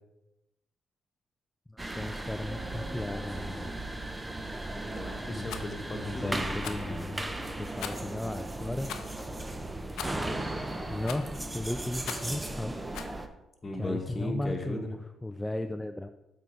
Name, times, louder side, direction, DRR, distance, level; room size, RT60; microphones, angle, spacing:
voice 1, 1.7-3.7 5.3-5.5 6.0-8.9 10.9-12.7 13.8-16.1, left 1 dB, 10° left, 8 dB, 0.4 m, -36 dB
sound 1, 1.8-13.3, right 1 dB, 15° right, 0.8 m, -36 dB
voice 2, 4.8-7.1 13.6-15.0, left 1 dB, 30° left, 3 dB, 1.6 m, -36 dB
Rattle, 5.4-5.7 6.6-6.9 7.8-8.1 8.8-9.1 10.0-10.3 11.0-11.4 12.0-12.4 12.9-13.2, left 8 dB, 80° left, 0.6 m, -40 dB
7.5 x 4.1 x 5.0 m, 0.96 s
supercardioid pair, 60°, 0 cm